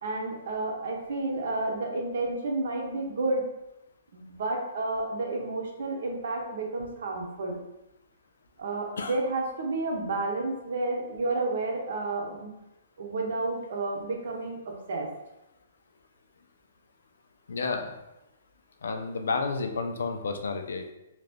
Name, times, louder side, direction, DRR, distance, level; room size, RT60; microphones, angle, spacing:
voice 1, 0.0-3.4 4.1-7.6 8.6-12.5 13.0-15.1, right 2 dB, 65° right, 1 dB, 0.8 m, -31 dB
voice 2, 17.5-18.0 18.8-20.9, left 4 dB, 85° left, 5 dB, 0.5 m, -31 dB
2.7 x 2.5 x 3.4 m, 0.92 s
hypercardioid pair, 165°, 0 cm